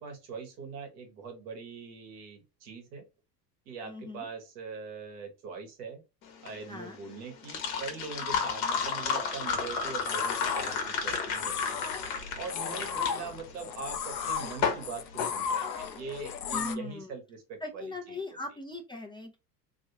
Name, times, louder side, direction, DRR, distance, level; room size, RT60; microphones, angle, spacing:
voice 1, 0.0-3.1 3.7-6.0 6.4-12.0 12.3-18.4, right 5 dB, 70° right, 4 dB, 1.4 m, -42 dB
voice 2, 3.8-4.3 6.7-7.0 8.3-8.4 12.6-12.8 16.5-17.1 17.6-19.4, left 2 dB, 10° left, 2 dB, 0.7 m, -40 dB
sound 1, 6.3-16.1, left 6 dB, 50° left, 1.2 m, -33 dB
sound 2, 9.5-16.7, left 7 dB, 90° left, 0.6 m, -35 dB
3.0 x 2.7 x 2.8 m, 0.26 s
hypercardioid pair, 75°, 49 cm